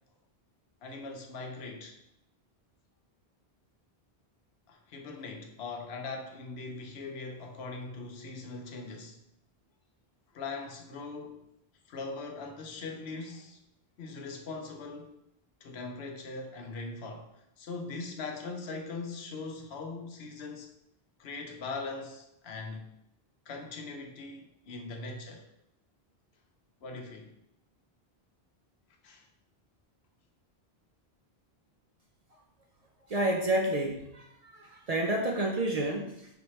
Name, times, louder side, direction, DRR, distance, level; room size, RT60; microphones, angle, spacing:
voice 1, 0.8-2.0 4.7-9.2 10.3-11.5 11.9-13.6 14.0-15.2 15.6-17.3 17.6-20.7 21.2-23.0 23.5-25.5 26.8-27.4 29.0-29.3, left 3 dB, 85° left, 0.9 m, -41 dB
voice 2, 33.1-36.3, right 1 dB, 55° right, 0.4 m, -30 dB
5.0 x 2.9 x 3.1 m
omnidirectional pair, 1.0 m